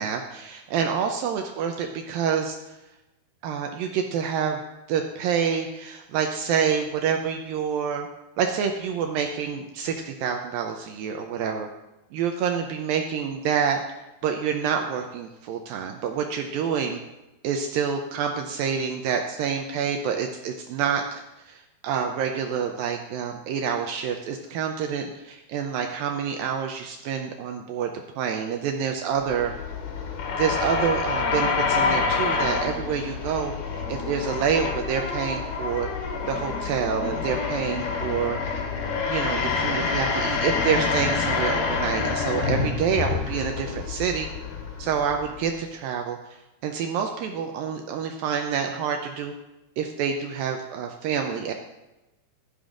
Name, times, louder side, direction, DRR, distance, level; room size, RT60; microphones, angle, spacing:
voice 1, 0.0-2.6 3.4-4.6 4.9-8.1 8.4-11.7 12.1-13.8 14.2-17.0 17.4-21.0 21.5-27.9 28.2-29.5 30.4-35.9 36.3-38.4 39.0-44.3 44.8-46.2 46.6-49.3 49.8-51.5, right 7 dB, 80° right, 3 dB, 2.1 m, -27 dB
sound 1, 29.2-45.5, left 5 dB, 70° left, 3.1 m, -27 dB
15.5 x 11.5 x 2.5 m, 0.98 s
omnidirectional pair, 4.8 m